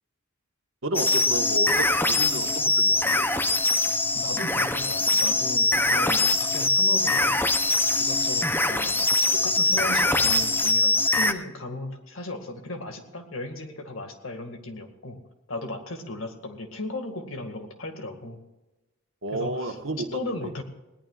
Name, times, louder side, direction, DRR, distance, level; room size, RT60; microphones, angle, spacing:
voice 1, 0.8-3.3 19.2-20.5, right 1 dB, 65° right, 5 dB, 1.5 m, -32 dB
sound 1, 0.9-11.3, left 2 dB, 10° left, 0.7 m, -23 dB
voice 2, 4.1-7.4 8.0-9.0 9.3-15.2 15.5-18.4 19.3-20.6, left 2 dB, 70° left, 5 dB, 2.1 m, -36 dB
20.5 x 18.0 x 2.5 m, 1.0 s
head